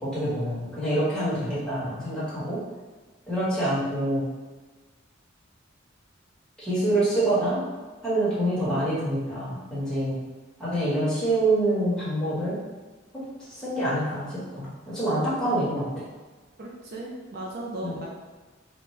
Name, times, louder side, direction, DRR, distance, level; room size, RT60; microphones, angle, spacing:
voice 1, 0.0-2.6 3.3-4.2 6.6-7.6 8.0-10.2 10.6-12.6 13.5-16.0 17.8-17.9, right 1 dB, 5° left, -10 dB, 1.3 m, -26 dB
voice 2, 16.6-18.1, right 1 dB, 55° right, -2 dB, 0.5 m, -36 dB
4.1 x 2.2 x 3.2 m, 1.3 s
head